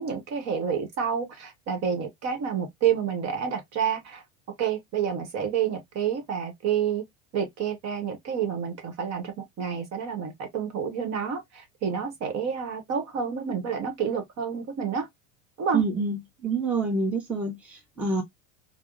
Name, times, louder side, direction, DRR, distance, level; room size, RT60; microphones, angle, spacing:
voice 1, 0.0-4.2 4.6-7.0 7.3-15.1 15.6-15.9, right 7 dB, 40° right, 1.0 m, -29 dB
voice 2, 15.7-18.2, right 3 dB, 5° right, 0.9 m, -27 dB
3.4 x 2.1 x 2.4 m
supercardioid pair, 125°, 41 cm